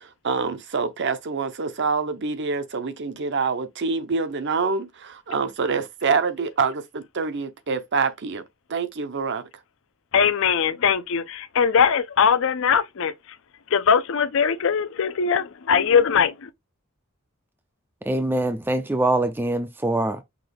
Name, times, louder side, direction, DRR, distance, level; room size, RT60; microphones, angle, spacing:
voice 1, 0.2-8.4 8.7-9.4, right 4 dB, 55° right, 0.7 m, -26 dB
voice 2, 10.1-13.1 13.7-16.5, left 6 dB, 65° left, 0.5 m, -21 dB
voice 3, 18.1-20.2, right 1 dB, 10° right, 0.4 m, -23 dB
5.9 x 2.3 x 3.4 m
head